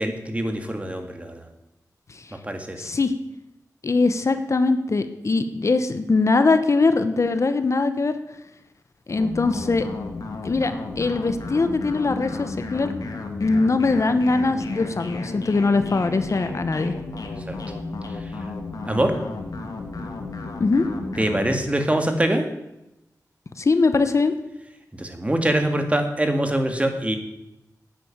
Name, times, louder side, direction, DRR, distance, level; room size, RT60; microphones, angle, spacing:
voice 1, 0.0-1.4 2.4-2.9 17.5-17.6 18.8-19.1 21.2-22.4 25.0-27.2, right 1 dB, 20° right, 5 dB, 2.1 m, -23 dB
voice 2, 2.8-3.1 3.8-8.1 9.1-9.9 10.4-12.9 13.4-16.9 20.6-20.9 23.6-24.3, left 3 dB, 50° left, 9 dB, 1.0 m, -21 dB
sound 1, 9.1-21.6, left 3 dB, 75° left, 2.0 m, -33 dB
9.9 x 9.6 x 8.8 m, 0.91 s
wide cardioid pair, 80°, 6 cm